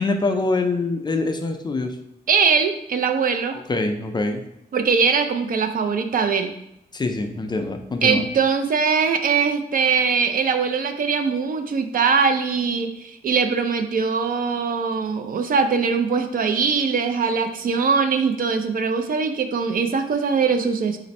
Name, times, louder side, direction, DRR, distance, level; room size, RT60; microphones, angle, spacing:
voice 1, 0.0-2.0 3.5-4.4 6.9-8.2, left 3 dB, 25° left, 5 dB, 0.3 m, -24 dB
voice 2, 2.3-3.6 4.7-6.5 8.0-21.0, right 5 dB, 55° right, 7 dB, 0.4 m, -21 dB
4.1 x 2.6 x 4.0 m, 0.81 s
wide cardioid pair, 170°, 17 cm